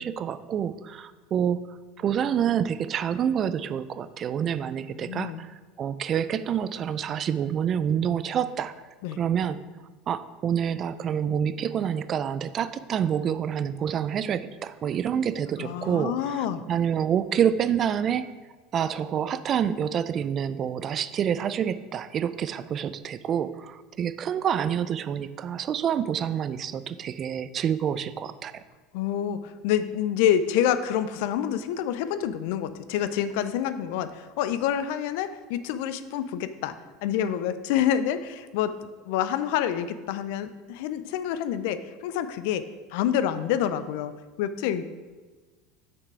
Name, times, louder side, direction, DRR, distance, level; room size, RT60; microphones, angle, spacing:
voice 1, 0.0-1.6 2.0-8.7 9.2-9.6 10.1-18.3 18.7-28.6, right 8 dB, 40° right, 14 dB, 0.4 m, -27 dB
voice 2, 4.8-5.4 9.0-9.2 15.6-16.6 28.9-36.8 37.0-38.7 39.1-42.6 42.9-44.8, left 10 dB, 70° left, 12 dB, 0.4 m, -27 dB
6.4 x 6.0 x 4.8 m, 1.3 s
hypercardioid pair, 90°, 0 cm